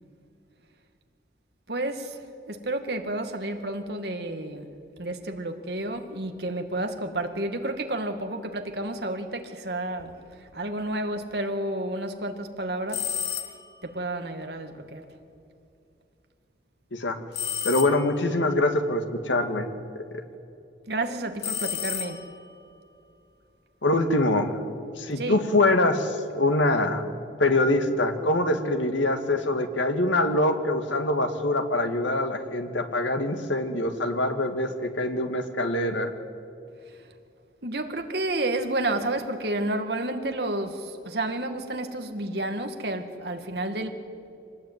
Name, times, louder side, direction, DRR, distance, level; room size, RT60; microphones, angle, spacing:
voice 1, 1.7-4.7 5.0-13.1 13.8-15.0 20.9-22.3 25.2-25.4 36.9-37.0 37.6-43.9, right 1 dB, 60° right, 5 dB, 2.2 m, -31 dB
sound 1, 12.9-13.8 17.3-18.3 21.4-22.5, left 9 dB, 60° left, 1.7 m, -32 dB
voice 2, 17.6-19.7 20.1-20.2 23.8-24.6 25.0-27.1 27.4-36.1, left 2 dB, 90° left, 6 dB, 2.1 m, -24 dB
25.5 x 19.0 x 9.4 m, 2.7 s
head